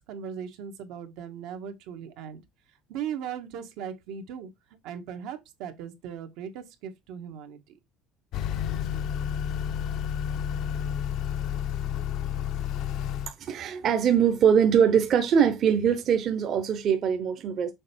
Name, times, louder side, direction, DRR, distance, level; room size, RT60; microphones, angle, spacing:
voice 1, 0.1-2.4 2.9-4.5 4.8-7.8, right 8 dB, 80° right, 1.4 m, -38 dB
Motor vehicle (road) / Accelerating revving vroom, 8.3-13.3, left 9 dB, 65° left, 0.6 m, -30 dB
voice 2, 13.3-17.7, right 8 dB, 45° right, 0.9 m, -22 dB
6.4 x 3.4 x 4.4 m
cardioid pair, 135°, 0 cm